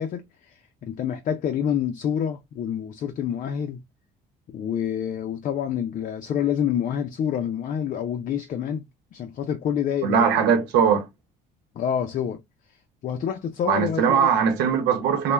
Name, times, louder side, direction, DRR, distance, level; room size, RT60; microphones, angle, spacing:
voice 1, 0.0-3.8 4.5-10.5 11.8-12.4 13.0-14.3, left 9 dB, 50° left, 0.5 m, -27 dB
voice 2, 10.0-11.1 13.7-15.3, right 7 dB, 90° right, 0.8 m, -20 dB
2.2 x 2.1 x 3.1 m
cardioid pair, 110°, 17 cm